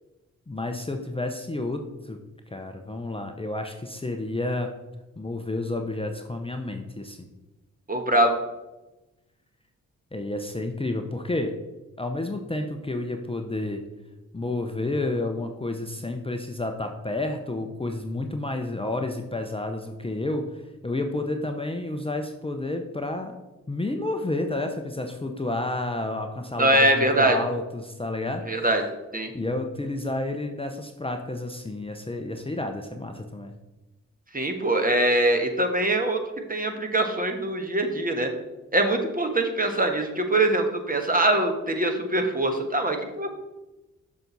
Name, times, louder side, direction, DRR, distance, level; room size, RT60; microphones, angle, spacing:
voice 1, 0.5-2.2 2.5-4.7 5.2-7.3 10.1-11.5 12.0-13.8 14.3-23.3 23.7-28.7 29.3-33.5, left 2 dB, 15° left, 4 dB, 0.8 m, -30 dB
voice 2, 7.9-8.3 26.6-27.4 28.5-28.8 29.1-29.3 34.3-36.2 36.5-38.3 38.7-43.3, right 1 dB, 25° right, 5 dB, 1.4 m, -23 dB
6.7 x 6.0 x 4.0 m, 1.0 s
supercardioid pair, 45°, 33 cm